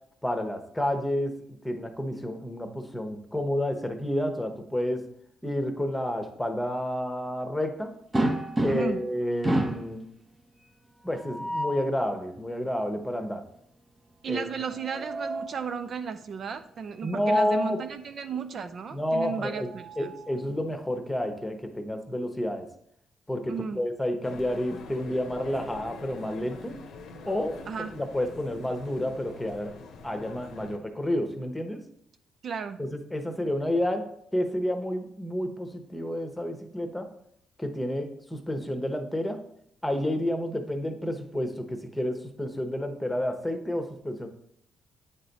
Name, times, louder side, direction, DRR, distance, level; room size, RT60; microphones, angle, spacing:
voice 1, 0.2-1.3 1.6-5.1 5.4-7.9 8.6-10.1 11.0-13.4 14.3-14.5 17.0-17.8 18.9-19.7 20.0-22.7 23.3-26.8 27.2-27.6 27.9-29.7 30.0-31.8 32.9-34.1 34.3-37.1 37.6-39.4 39.8-44.3, left 1 dB, 10° left, 5 dB, 1.0 m, -30 dB
sound 1, 8.1-9.1 9.4-9.9 11.1-11.9 14.6-15.6 17.0-17.2 17.6-17.7 19.2-20.4, right 1 dB, 20° right, 0.7 m, -30 dB
voice 2, 8.7-9.0 14.2-20.1 23.5-23.8 27.7-28.0 32.4-32.8, right 6 dB, 55° right, 9 dB, 0.4 m, -34 dB
sound 2, 24.2-30.8, left 4 dB, 80° left, 0.8 m, -45 dB
8.6 x 3.3 x 4.0 m, 0.70 s
cardioid pair, 90°, 0 cm